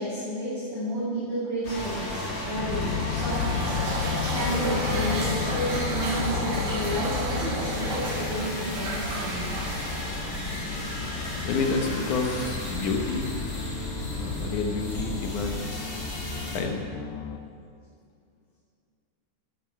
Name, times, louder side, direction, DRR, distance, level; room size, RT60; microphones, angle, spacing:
voice 1, 0.0-3.7 4.3-9.5, right 1 dB, 40° right, -11 dB, 3.7 m, -31 dB
sound 1, 1.6-16.6, left 1 dB, 35° left, 1.5 m, -34 dB
sound 2, 2.6-17.4, left 7 dB, 90° left, 2.9 m, -34 dB
sound 3, 3.1-10.7, right 2 dB, 85° right, 3.7 m, -34 dB
voice 2, 11.0-13.3 14.1-16.8, left 4 dB, 70° left, 3 dB, 1.9 m, -30 dB
13.0 x 10.0 x 4.7 m, 2.2 s
omnidirectional pair, 4.8 m